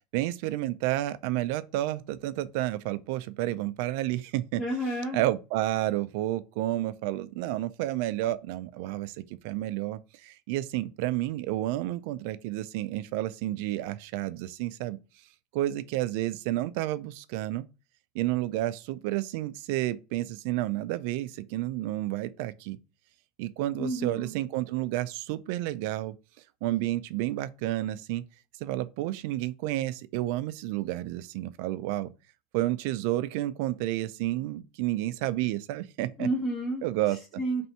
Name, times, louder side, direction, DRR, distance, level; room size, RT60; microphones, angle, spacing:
voice 1, 0.1-4.6 5.1-15.0 15.5-17.7 18.1-22.8 23.4-26.1 26.6-28.2 28.6-32.1 32.5-36.3 36.8-37.2, right 15 dB, 70° right, 0.4 m, -30 dB
voice 2, 4.6-5.2 23.8-24.4 36.2-37.7, right 1 dB, 20° left, 1.1 m, -31 dB
3.4 x 2.7 x 4.3 m
hypercardioid pair, 100°, 0 cm